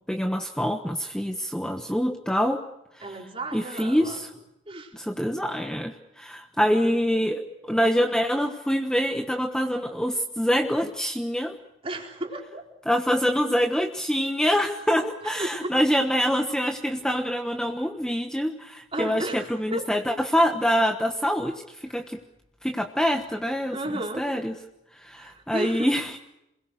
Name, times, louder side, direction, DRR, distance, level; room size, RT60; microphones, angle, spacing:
voice 1, 0.1-2.6 3.5-4.3 4.9-11.5 12.9-22.2 22.6-23.8 24.2-24.5 25.0-26.2, equal, 5° left, 4 dB, 1.2 m, -25 dB
voice 2, 3.0-4.2 4.7-4.9 11.8-12.6 15.3-15.7 18.9-19.9 23.7-24.3 25.1-26.0, right 1 dB, 30° right, 2 dB, 4.2 m, -33 dB
28.5 x 21.5 x 6.5 m, 0.87 s
head